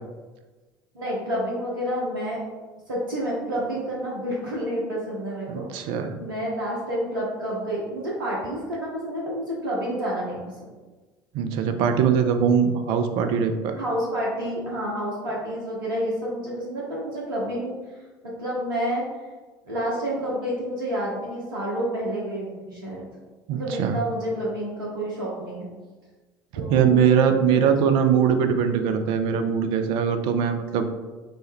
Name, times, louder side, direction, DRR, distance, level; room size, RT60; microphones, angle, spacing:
voice 1, 0.9-2.4 2.9-5.9 6.2-10.4 13.8-17.7 18.2-19.0 19.7-23.0 23.5-25.7 26.5-27.0 27.4-27.6, equal, 70° right, -5 dB, 0.8 m, -29 dB
voice 2, 5.5-6.1 11.3-13.8 23.5-24.0 26.5-30.9, right 7 dB, 50° right, 7 dB, 0.4 m, -21 dB
4.2 x 2.1 x 3.3 m, 1.3 s
figure-of-eight pair, 65°, 11 cm